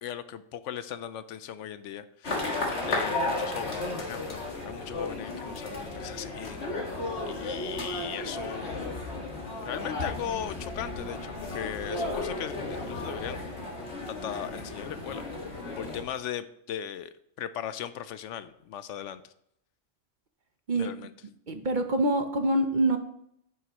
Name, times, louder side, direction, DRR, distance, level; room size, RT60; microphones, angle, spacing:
voice 1, 0.0-2.5 2.9-8.9 9.6-13.4 14.1-15.3 15.8-19.3 20.7-21.1, left 10 dB, 75° left, 13 dB, 0.9 m, -38 dB
sound 1, 2.2-16.0, left 2 dB, 60° left, 2.0 m, -34 dB
voice 2, 21.5-23.0, right 1 dB, 45° right, 6 dB, 0.8 m, -25 dB
9.5 x 7.9 x 2.9 m, 0.73 s
omnidirectional pair, 1.3 m